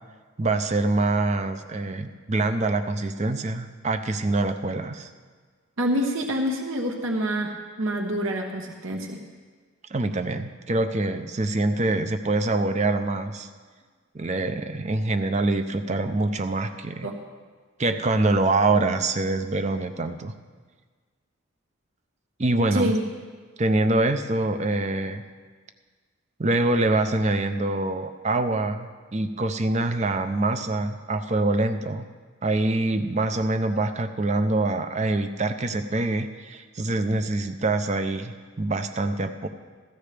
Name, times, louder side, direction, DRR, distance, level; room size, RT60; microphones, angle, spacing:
voice 1, 0.4-5.1 9.9-13.5 14.1-17.1 17.8-20.3 22.4-22.9 23.6-25.2 26.4-32.1 32.4-39.5, right 2 dB, 30° right, 8 dB, 0.6 m, -25 dB
voice 2, 5.8-9.2 17.0-17.1 22.7-23.0, equal, 70° right, 1 dB, 1.1 m, -27 dB
16.0 x 13.5 x 3.4 m, 1.5 s
head